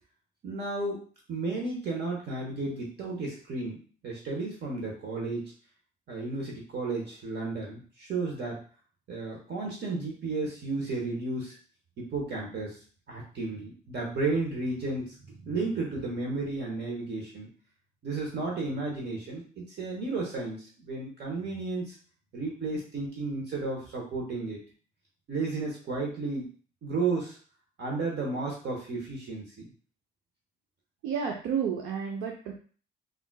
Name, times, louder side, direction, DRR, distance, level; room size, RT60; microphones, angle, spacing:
voice 1, 0.4-1.0 1.3-5.4 6.1-8.6 9.1-11.6 12.0-12.8 13.1-17.5 18.0-21.9 22.3-24.6 25.3-26.5 26.8-27.4 27.8-29.7, right 3 dB, 60° right, -2 dB, 1.0 m, -33 dB
voice 2, 31.0-32.5, right 7 dB, 90° right, 0 dB, 0.5 m, -31 dB
3.7 x 2.4 x 2.2 m, 0.41 s
cardioid pair, 90°, 20 cm